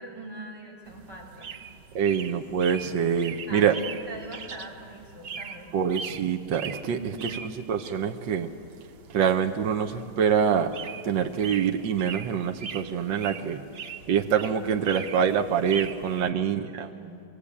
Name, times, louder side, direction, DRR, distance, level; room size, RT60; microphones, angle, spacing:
voice 1, 0.0-1.5 3.5-5.7 6.9-7.5 16.1-16.4 16.8-17.2, right 2 dB, 10° right, -2 dB, 3.4 m, -42 dB
sound 1, 0.9-16.3, right 6 dB, 60° right, 0.6 m, -42 dB
voice 2, 1.9-3.7 5.7-7.3 7.7-8.5 9.1-10.7 11.0-13.6 14.1-16.9, right 7 dB, 75° right, 4 dB, 1.6 m, -25 dB
24.0 x 16.5 x 8.5 m, 2.5 s
omnidirectional pair, 2.1 m